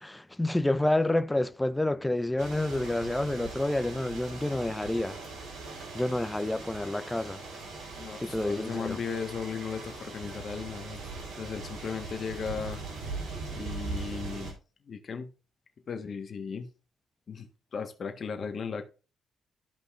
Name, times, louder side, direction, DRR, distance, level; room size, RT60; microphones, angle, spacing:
voice 1, 0.0-5.2 5.9-7.4 8.2-9.0, left 1 dB, 10° left, 0.4 m, -29 dB
sound 1, 2.4-14.5, right 3 dB, 90° right, 4.0 m, -40 dB
voice 2, 8.0-11.0 11.4-12.8 13.5-14.5 14.8-15.3 15.9-16.7 17.3-18.8, left 6 dB, 40° left, 1.4 m, -36 dB
14.0 x 5.4 x 2.5 m
cardioid pair, 145°, 0 cm